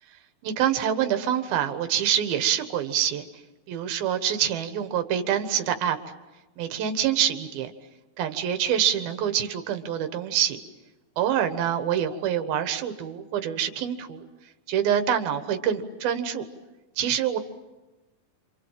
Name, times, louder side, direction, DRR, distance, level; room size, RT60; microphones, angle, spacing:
voice 1, 0.4-3.2 3.7-6.0 6.6-7.7 8.2-10.6 11.2-14.2 14.7-16.4 17.0-17.4, right 9 dB, 80° right, 7 dB, 3.3 m, -26 dB
28.5 x 26.5 x 7.5 m, 1.1 s
omnidirectional pair, 4.3 m